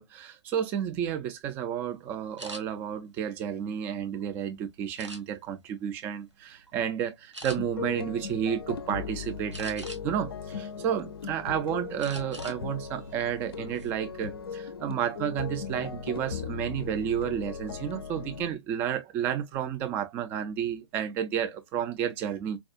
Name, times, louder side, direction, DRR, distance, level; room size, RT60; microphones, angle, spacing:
voice 1, 0.0-22.6, right 9 dB, 15° right, 0.4 m, -31 dB
sound 1, 2.4-2.6 3.3-4.2 5.0-5.6 6.1-6.3 6.7-6.8 7.3-7.6 9.5-10.2 10.7-11.5 12.0-12.6 12.9-13.1 13.5-13.9, right 1 dB, 80° right, 1.1 m, -43 dB
sound 2, 7.5-18.5, left 6 dB, 55° left, 0.5 m, -38 dB
4.5 x 2.3 x 2.4 m
figure-of-eight pair, 125°, 15 cm